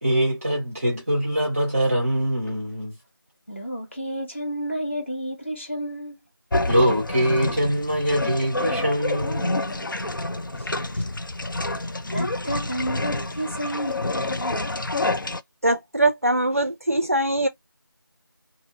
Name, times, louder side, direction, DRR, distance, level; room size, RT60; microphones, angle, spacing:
voice 1, 0.0-2.9 6.6-9.6, equal, 5° right, 0.8 m, -23 dB
voice 2, 3.5-6.2 10.8-11.1 11.7-14.9, equal, 30° left, 1.0 m, -31 dB
sound 1, 6.5-15.4, left 2 dB, 60° left, 0.5 m, -28 dB
voice 3, 15.6-17.5, right 1 dB, 40° right, 0.4 m, -22 dB
2.7 x 2.3 x 2.6 m
figure-of-eight pair, 170°, 12 cm